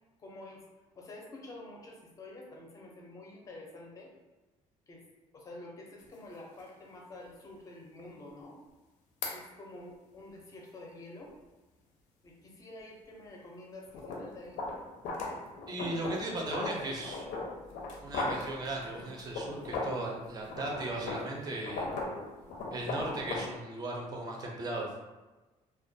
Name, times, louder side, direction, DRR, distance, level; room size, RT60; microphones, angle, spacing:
voice 1, 0.2-0.6 1.0-4.1 4.9-5.0 5.3-8.6 9.3-11.4 12.2-14.6, left 2 dB, 25° left, -1 dB, 0.5 m, -48 dB
sound 1, 6.0-6.1 6.6-6.7 9.2-9.4 13.9-20.1 20.4-23.5, left 3 dB, 80° left, 0.5 m, -38 dB
voice 2, 15.7-17.3 18.0-21.9 22.7-24.9, right 2 dB, 30° right, 0 dB, 0.5 m, -37 dB
2.2 x 2.2 x 2.6 m, 1.1 s
cardioid pair, 145°, 13 cm